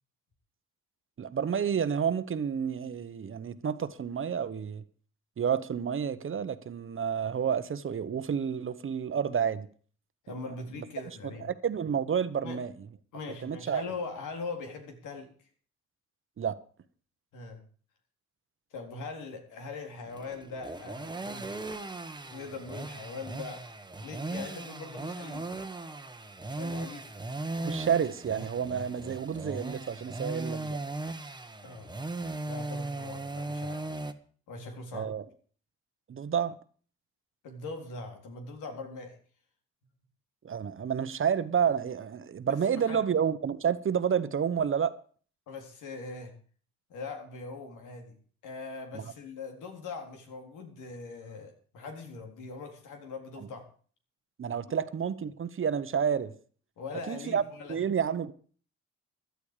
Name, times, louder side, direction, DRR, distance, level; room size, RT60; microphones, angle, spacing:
voice 1, 1.2-4.8 5.4-9.7 10.8-10.9 11.2-12.7 13.4-13.8 16.4-16.6 27.6-30.8 34.9-35.2 36.1-36.5 40.4-44.9 48.9-49.1 53.4-53.5 54.4-56.3 57.1-57.4 57.7-58.3, right 7 dB, 45° right, 1.1 m, -30 dB
voice 2, 10.2-11.5 12.4-12.6 13.1-15.3 17.3-17.6 18.7-21.5 22.3-23.7 24.0-25.6 26.6-27.1 31.6-31.9 32.4-33.8 34.5-35.1 37.4-39.2 42.5-43.0 45.5-46.3 46.9-48.1 48.4-53.6 56.8-57.8, left 4 dB, 85° left, 3.8 m, -41 dB
sound 1, 20.1-34.1, right 2 dB, 15° right, 1.3 m, -38 dB
16.0 x 11.5 x 5.0 m
cardioid pair, 90°, 30 cm